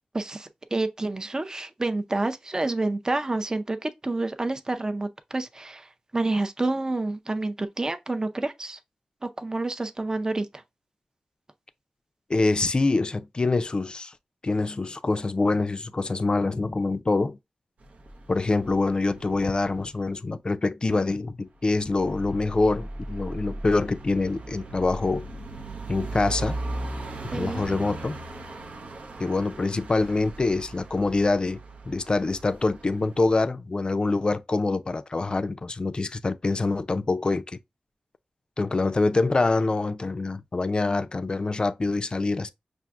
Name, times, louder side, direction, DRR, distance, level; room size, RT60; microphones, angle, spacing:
voice 1, 0.1-8.8 9.2-10.6 27.3-27.6, right 2 dB, 30° right, 0.5 m, -29 dB
voice 2, 12.3-14.1 14.4-17.4 18.3-25.2 25.9-26.6 27.2-28.2 29.2-31.6 31.9-37.6 38.6-42.5, left 3 dB, 40° left, 0.4 m, -25 dB
sound 1, 17.8-20.0 21.7-33.4, right 2 dB, 75° right, 0.7 m, -38 dB
5.8 x 2.5 x 2.4 m
wide cardioid pair, 70°, 2 cm